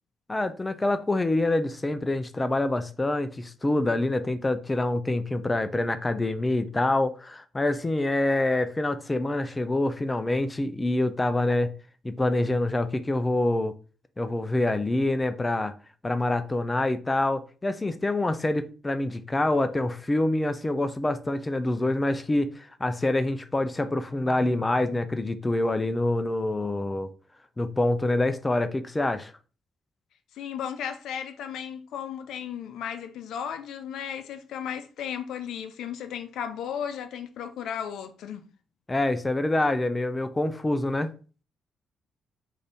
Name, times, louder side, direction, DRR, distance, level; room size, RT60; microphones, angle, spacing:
voice 1, 0.3-11.7 12.0-13.7 14.2-15.7 16.0-27.1 27.6-29.3 38.9-41.1, left 2 dB, 20° left, 0.4 m, -26 dB
voice 2, 30.3-38.5, left 8 dB, 80° left, 0.5 m, -35 dB
3.8 x 2.7 x 3.4 m
cardioid pair, 80°, 0 cm